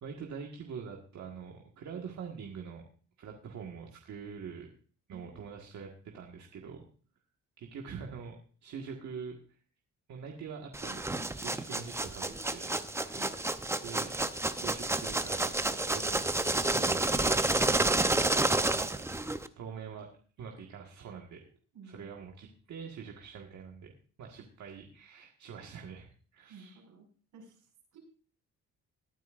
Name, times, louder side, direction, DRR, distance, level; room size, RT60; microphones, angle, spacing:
voice 1, 0.0-2.8 3.2-4.7 5.1-6.9 7.6-9.6 10.1-13.6 13.8-16.2 16.5-19.1 19.6-20.1 20.4-21.5 21.8-23.9 24.2-26.8, right 6 dB, 65° right, 1 dB, 1.7 m, -45 dB
voice 2, 5.1-5.5 13.1-13.4 18.8-19.1 21.7-22.1 26.5-27.1 27.3-28.0, right 4 dB, 85° right, 0 dB, 5.8 m, -54 dB
sound 1, 10.7-19.5, right 2 dB, 10° right, 0.7 m, -30 dB
19.5 x 9.3 x 2.5 m, 0.42 s
cardioid pair, 90°, 30 cm